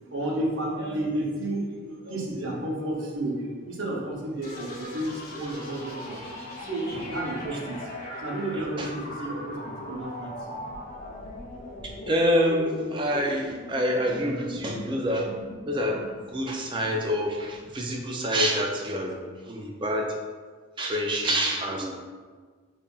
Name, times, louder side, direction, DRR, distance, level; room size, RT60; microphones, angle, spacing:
voice 1, 0.1-3.4 3.7-6.2 6.7-7.8 8.2-10.3 10.6-10.7, right 1 dB, 65° right, -3 dB, 0.7 m, -31 dB
sound 1, 4.4-18.0, left 1 dB, 50° left, 1.1 m, -39 dB
voice 2, 8.5-8.9 11.8-15.3 15.7-20.1 20.8-21.9, equal, 25° right, 1 dB, 0.4 m, -27 dB
5.2 x 2.4 x 2.3 m, 1.5 s
head